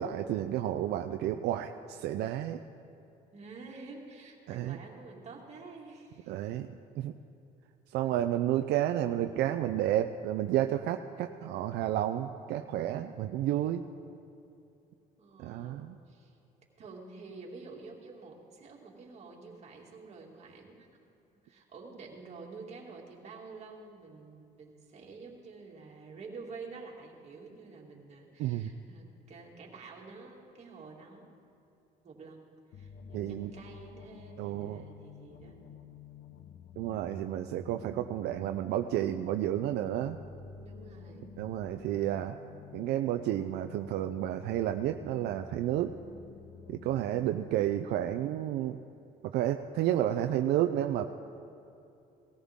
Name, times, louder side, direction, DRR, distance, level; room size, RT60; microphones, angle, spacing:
voice 1, 0.0-2.6 4.5-4.8 6.3-6.7 7.0-7.1 7.9-13.8 15.4-16.0 28.4-28.7 33.1-33.5 34.4-34.8 36.8-40.2 41.4-42.4 42.7-45.9 46.7-48.8 49.2-51.1, right 12 dB, 80° right, 7 dB, 0.5 m, -31 dB
voice 2, 3.3-6.4 15.2-16.4 16.8-21.1 21.4-31.3 32.0-32.4 32.7-35.6 40.6-41.3, right 4 dB, 40° right, -2 dB, 2.5 m, -49 dB
sound 1, 32.7-47.4, left 6 dB, 80° left, 1.0 m, -50 dB
18.5 x 14.0 x 3.7 m, 2.7 s
cardioid pair, 110°, 17 cm